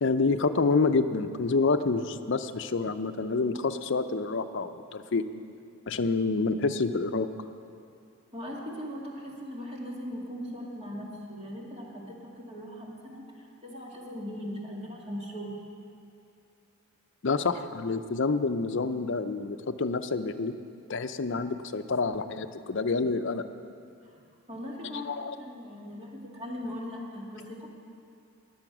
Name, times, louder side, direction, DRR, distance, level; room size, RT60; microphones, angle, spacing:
voice 1, 0.0-5.2 5.9-7.3 17.2-20.5 20.9-23.4 24.9-25.4, left 4 dB, 55° left, 9 dB, 0.5 m, -28 dB
voice 2, 8.3-15.6 24.1-24.2 24.5-25.1 25.4-27.7, equal, 30° right, -2 dB, 2.1 m, -39 dB
19.5 x 7.8 x 6.1 m, 2.5 s
head